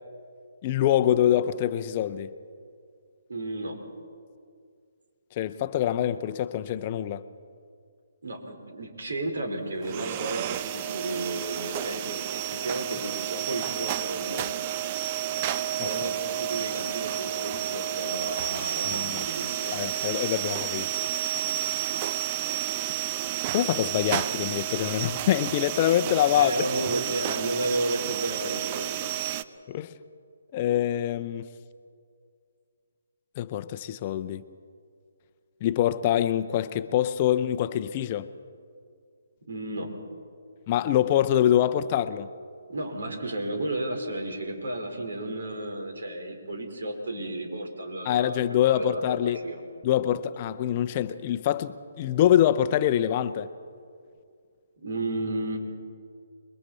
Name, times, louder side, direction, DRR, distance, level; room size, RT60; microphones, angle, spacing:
voice 1, 0.6-2.3 5.4-7.2 15.8-15.9 18.8-19.3 19.7-20.9 23.5-26.5 29.7-29.9 30.5-31.5 33.4-34.4 35.6-38.3 40.7-42.3 48.0-49.4 49.8-53.5, left 11 dB, 35° left, 0.7 m, -25 dB
voice 2, 3.3-3.8 8.2-14.4 15.8-19.7 26.3-29.2 39.5-39.9 42.7-49.6 54.8-55.6, right 2 dB, 65° right, 4.6 m, -33 dB
sound 1, 9.8-29.4, right 12 dB, 30° right, 0.7 m, -31 dB
29.0 x 22.0 x 4.4 m
figure-of-eight pair, 140°, 0 cm